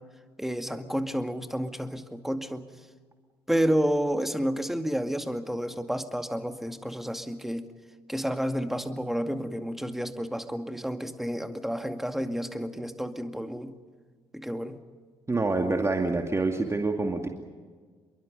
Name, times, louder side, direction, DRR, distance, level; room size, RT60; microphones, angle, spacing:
voice 1, 0.4-2.7 3.5-7.7 8.1-13.8 14.3-14.8, equal, ahead, 7 dB, 2.2 m, -30 dB
voice 2, 15.3-17.3, right 3 dB, 20° right, 3 dB, 2.4 m, -26 dB
27.5 x 23.0 x 5.4 m, 1.5 s
figure-of-eight pair, 45°, 13 cm